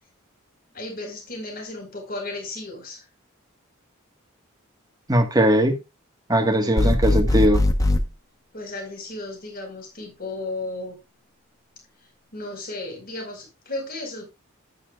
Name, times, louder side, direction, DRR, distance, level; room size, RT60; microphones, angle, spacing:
voice 1, 0.7-3.0 8.5-11.0 12.3-14.2, left 2 dB, 45° left, 4.9 m, -34 dB
voice 2, 5.1-5.8 6.3-7.6, right 1 dB, 20° right, 1.6 m, -19 dB
sound 1, 6.8-8.0, left 1 dB, 15° left, 1.1 m, -20 dB
11.0 x 9.9 x 2.4 m
head